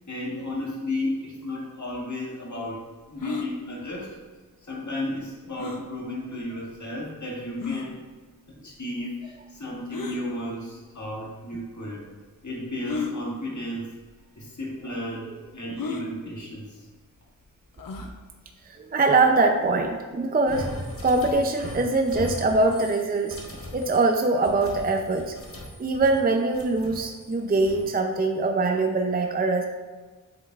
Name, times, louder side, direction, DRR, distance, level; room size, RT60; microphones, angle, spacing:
voice 1, 0.1-2.8 3.1-4.2 4.6-8.0 8.5-12.1 12.4-13.9 14.4-15.3 15.5-16.9, left 1 dB, 60° left, -4 dB, 1.9 m, -33 dB
sound 1, 3.2-3.5 5.6-5.9 6.7-6.8 7.6-7.9 9.9-10.2 11.3-11.4 12.8-13.1 14.1-14.2 14.5-14.6 15.8-16.1 17.8-18.1, left 5 dB, 75° left, 0.7 m, -32 dB
voice 2, 18.7-20.8 21.0-23.4 23.7-25.3 25.8-29.7, right 3 dB, 30° right, 4 dB, 0.5 m, -23 dB
sound 2, 20.5-26.2 26.5-27.9, left 1 dB, 40° left, 1.2 m, -39 dB
7.8 x 5.3 x 2.4 m, 1.4 s
wide cardioid pair, 70°, 34 cm